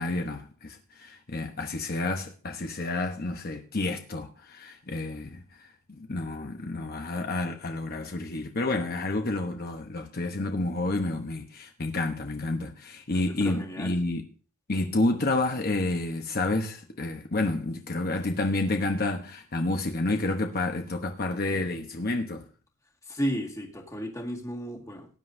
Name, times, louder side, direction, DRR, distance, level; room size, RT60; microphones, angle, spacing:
voice 1, 0.0-14.3 14.7-22.5, left 2 dB, 45° left, 0.9 m, -30 dB
voice 2, 13.1-14.0 23.1-25.1, equal, 15° left, 1.8 m, -33 dB
18.5 x 9.8 x 2.6 m
head